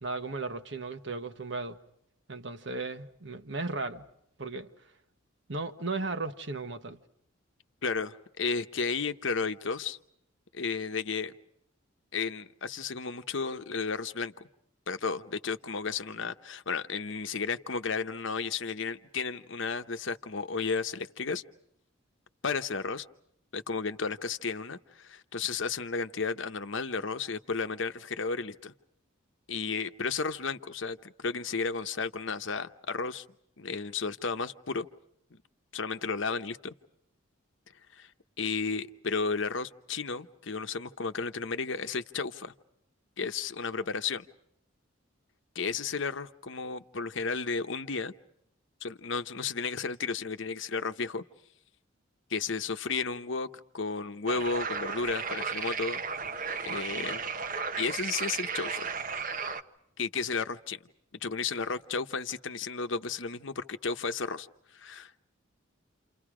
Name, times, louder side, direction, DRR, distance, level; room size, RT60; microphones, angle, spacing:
voice 1, 0.0-1.8 2.3-4.0 4.4-4.7 5.5-7.0, right 3 dB, 60° right, 1.3 m, -35 dB
voice 2, 7.8-10.0 10.5-11.3 12.1-14.5 14.9-21.4 22.4-23.0 23.5-28.7 29.5-33.2 33.6-34.9 35.3-35.4 35.7-36.7 37.9-38.1 38.4-42.5 43.2-44.3 45.5-48.1 48.8-51.2 52.3-56.0 56.6-57.3 57.8-58.9 60.0-60.8 61.2-64.5 64.7-65.2, left 4 dB, 65° left, 0.9 m, -33 dB
sound 1, 54.3-59.6, right 5 dB, 40° right, 1.0 m, -34 dB
29.0 x 29.0 x 5.0 m
head